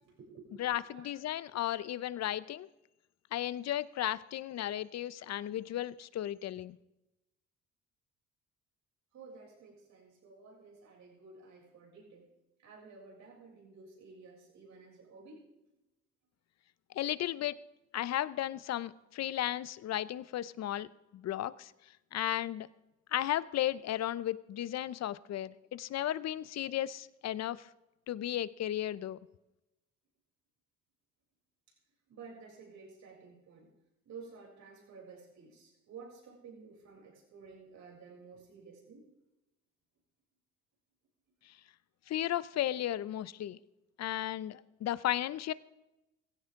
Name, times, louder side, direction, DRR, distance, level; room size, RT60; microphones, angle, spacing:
voice 1, 0.0-0.6 0.9-1.1 9.1-12.3 12.6-15.5 31.7-31.8 32.1-33.7 34.1-39.1, right 4 dB, 65° right, -2 dB, 6.9 m, -53 dB
voice 2, 0.6-2.7 3.3-6.8 16.9-17.6 17.9-20.9 21.1-21.7 22.1-22.7 23.1-27.7 28.1-29.2 41.5-41.6 42.1-43.6 44.0-45.5, left 12 dB, 60° left, 18 dB, 0.7 m, -34 dB
16.0 x 15.5 x 3.7 m, 0.95 s
cardioid pair, 90°, 30 cm